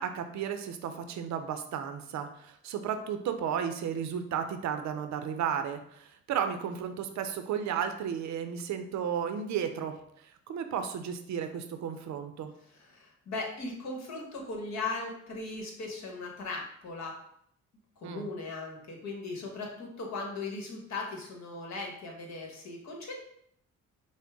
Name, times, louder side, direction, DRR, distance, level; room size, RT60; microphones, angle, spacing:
voice 1, 0.0-12.5 18.0-18.3, right 8 dB, 65° right, 8 dB, 0.5 m, -34 dB
voice 2, 12.7-17.2 18.0-23.2, left 3 dB, 65° left, 0 dB, 1.2 m, -38 dB
5.2 x 2.1 x 3.5 m, 0.70 s
cardioid pair, 90°, 30 cm